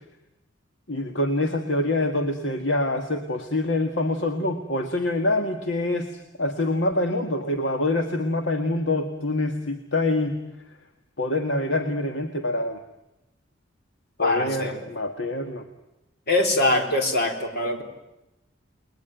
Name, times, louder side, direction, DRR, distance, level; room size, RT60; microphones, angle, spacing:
voice 1, 0.9-10.4 11.2-12.8 14.2-15.6, left 2 dB, 70° left, 5 dB, 1.9 m, -25 dB
voice 2, 14.2-14.8 16.3-17.8, left 2 dB, 55° left, 4 dB, 4.4 m, -23 dB
30.0 x 21.0 x 9.3 m, 0.93 s
head